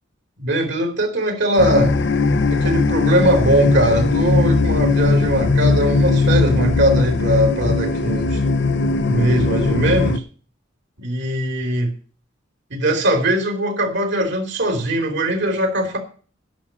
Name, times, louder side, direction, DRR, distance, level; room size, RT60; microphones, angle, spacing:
voice 1, 0.4-1.9 2.5-8.4 9.0-10.2 11.0-11.9 12.7-16.0, right 1 dB, 60° right, 3.0 m, -20 dB
sound 1, 1.6-10.2, left 3 dB, 60° left, 0.8 m, -19 dB
10.0 x 6.4 x 8.6 m
head